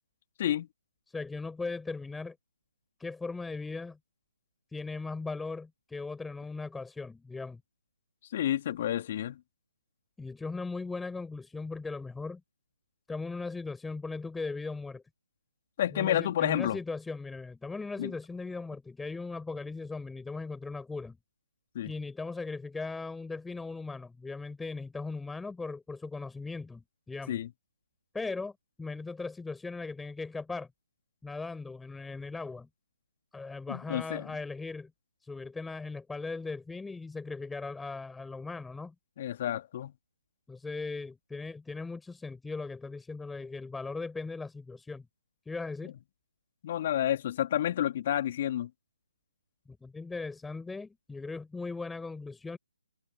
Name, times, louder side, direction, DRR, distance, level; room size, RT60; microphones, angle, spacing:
voice 1, 1.1-2.4 3.0-4.0 4.7-7.6 10.2-12.4 13.1-15.0 15.9-21.2 21.8-27.4 28.1-30.7 31.2-32.7 33.3-34.9 35.2-38.9 40.5-45.1 45.5-45.9 49.7-52.6, left 3 dB, 5° left, 5.4 m, -38 dB
voice 2, 8.3-9.4 15.8-16.8 18.0-18.1 21.7-21.9 27.3-27.5 33.7-34.3 39.2-39.9 45.8-45.9 46.6-48.7, left 11 dB, 35° left, 2.3 m, -30 dB
figure-of-eight pair, 140°, 0 cm